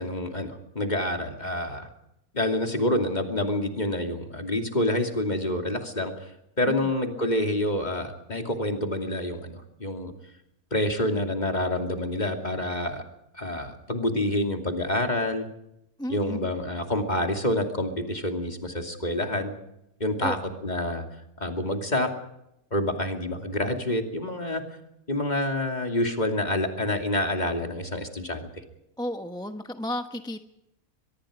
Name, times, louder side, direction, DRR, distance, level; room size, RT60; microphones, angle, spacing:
voice 1, 0.0-1.9 2.3-6.3 6.6-10.1 10.7-13.0 13.3-15.5 16.1-19.5 20.0-20.4 20.6-21.0 21.4-22.1 22.7-24.6 25.1-28.5, left 1 dB, 30° left, 4 dB, 2.8 m, -27 dB
voice 2, 16.0-16.6 20.2-20.4 29.0-30.4, left 1 dB, 5° left, 7 dB, 0.7 m, -33 dB
24.0 x 21.5 x 5.1 m, 0.82 s
omnidirectional pair, 1.6 m